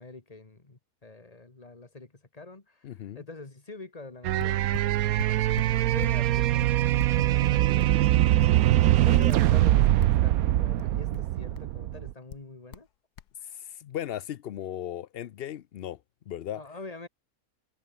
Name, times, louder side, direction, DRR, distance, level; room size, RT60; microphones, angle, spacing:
voice 1, 0.0-5.4 5.7-8.4 9.0-12.9 16.5-17.1, left 3 dB, 25° left, 2.0 m, -45 dB
voice 2, 2.8-3.2 13.4-16.0 16.3-16.6, left 11 dB, 65° left, 0.6 m, -37 dB
sound 1, 4.1-4.2 4.4-6.2 6.6-8.9 9.2-10.3 10.8-11.8 12.3-12.9 13.2-13.3, left 10 dB, 90° left, 1.5 m, -43 dB
sound 2, 4.2-12.1, right 14 dB, 70° right, 1.0 m, -23 dB
omnidirectional pair, 1.6 m